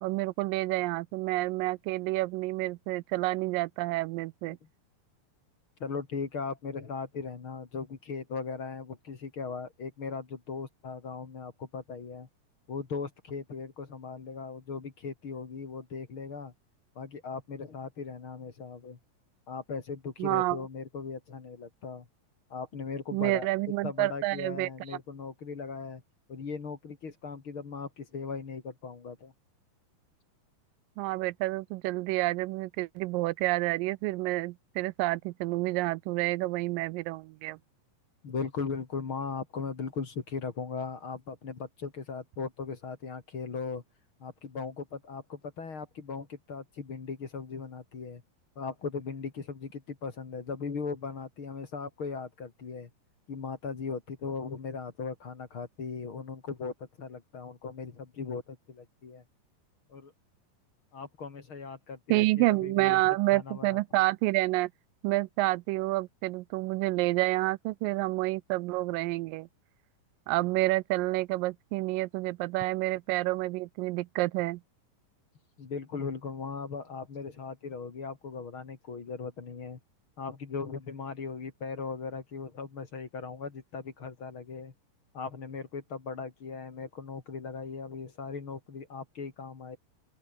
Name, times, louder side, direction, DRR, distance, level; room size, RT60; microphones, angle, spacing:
voice 1, 0.0-4.6 20.2-20.6 23.1-25.0 31.0-37.6 62.1-64.7 65.0-69.5 70.3-74.6, right 20 dB, 85° right, 2.2 m, -29 dB
voice 2, 5.8-12.3 12.7-16.5 17.0-19.0 19.5-22.1 22.5-23.5 23.8-26.0 26.3-29.3 38.2-43.8 44.2-48.2 48.6-52.9 53.3-59.2 59.9-60.1 60.9-64.0 75.6-79.8 80.2-84.7 85.1-89.8, left 5 dB, 40° left, 3.0 m, -38 dB
open air
omnidirectional pair, 4.0 m